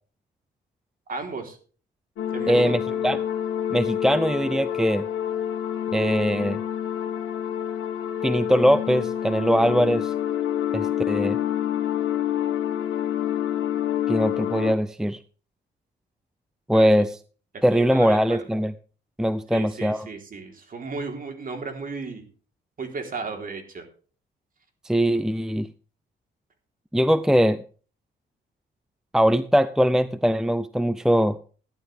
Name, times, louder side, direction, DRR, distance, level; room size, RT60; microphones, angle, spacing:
voice 1, 1.1-1.6 2.3-3.2 16.7-17.0 17.5-18.4 19.5-22.3 22.8-23.9, right 4 dB, 45° right, 4 dB, 3.6 m, -35 dB
sound 1, 2.2-14.7, left 10 dB, 80° left, 1.8 m, -27 dB
voice 2, 2.5-3.2 3.7-5.0 5.9-6.6 8.2-10.1 10.7-11.4 14.1-15.2 16.7-17.2 17.6-18.7 19.2-20.1 24.8-25.7 26.9-27.6 29.1-31.4, equal, 5° right, 14 dB, 0.6 m, -21 dB
14.5 x 11.0 x 3.4 m, 0.40 s
cardioid pair, 90°, 20 cm